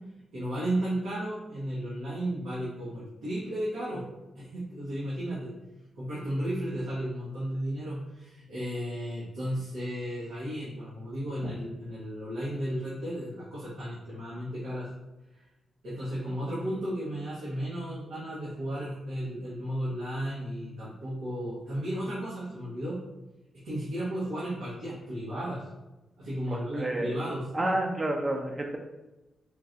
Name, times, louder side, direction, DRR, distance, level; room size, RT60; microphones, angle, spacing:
voice 1, 0.3-4.1 4.3-5.5 6.0-14.9 15.3-15.4 15.8-23.0 23.5-25.7 26.2-27.5, right 1 dB, 90° right, -10 dB, 1.1 m, -34 dB
voice 2, 26.5-27.2 27.5-28.8, right 1 dB, 30° right, 1 dB, 0.4 m, -30 dB
4.3 x 2.2 x 2.6 m, 1.0 s
cardioid pair, 85°, 0 cm